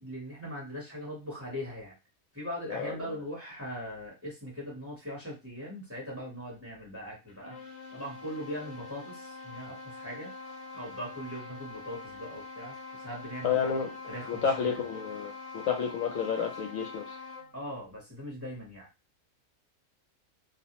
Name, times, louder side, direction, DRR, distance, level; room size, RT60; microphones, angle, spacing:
voice 1, 0.0-1.9 2.3-7.6 7.9-10.3 10.7-13.8 14.1-14.7 17.5-18.9, equal, 10° right, -4 dB, 0.9 m, -40 dB
voice 2, 2.7-3.2 13.4-13.9 14.3-15.3 15.7-17.0, left 6 dB, 80° left, 4 dB, 1.0 m, -30 dB
sound 1, 7.3-17.6, left 3 dB, 55° left, 0.7 m, -44 dB
2.4 x 2.1 x 2.9 m, 0.27 s
omnidirectional pair, 1.4 m